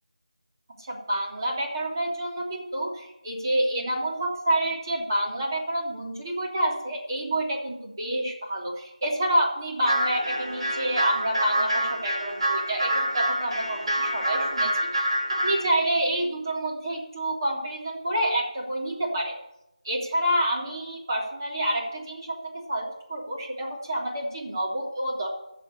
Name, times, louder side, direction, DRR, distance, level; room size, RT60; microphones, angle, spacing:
voice 1, 0.8-19.3 19.8-22.3 22.7-25.3, right 1 dB, 30° right, -3 dB, 3.1 m, -28 dB
sound 1, 9.8-15.6, right 1 dB, 55° right, 2.3 m, -27 dB
11.0 x 6.9 x 8.7 m, 0.86 s
figure-of-eight pair, 165°, 4 cm